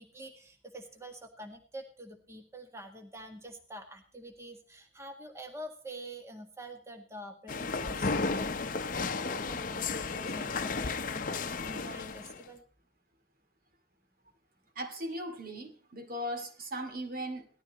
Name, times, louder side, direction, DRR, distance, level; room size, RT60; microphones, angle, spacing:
voice 1, 0.0-8.6 9.0-12.6, right 1 dB, 15° right, 4 dB, 1.8 m, -47 dB
sound 1, 7.5-12.4, left 4 dB, 50° left, 0.8 m, -33 dB
voice 2, 14.8-17.5, equal, 55° right, 6 dB, 2.5 m, -38 dB
19.0 x 13.5 x 3.1 m, 0.41 s
head